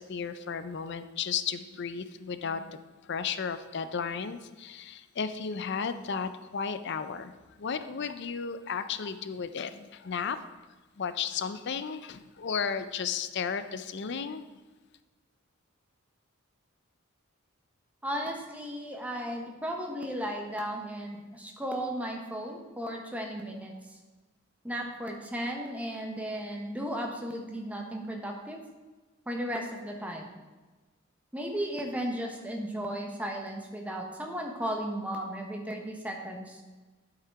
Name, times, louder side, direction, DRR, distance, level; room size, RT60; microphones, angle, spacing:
voice 1, 0.0-7.3 7.6-10.4 11.0-14.4, left 6 dB, 55° left, 11 dB, 0.5 m, -34 dB
voice 2, 18.0-23.7 24.6-28.6 29.3-30.3 31.3-36.6, equal, 5° right, 1 dB, 1.0 m, -35 dB
8.7 x 5.8 x 4.7 m, 1.3 s
head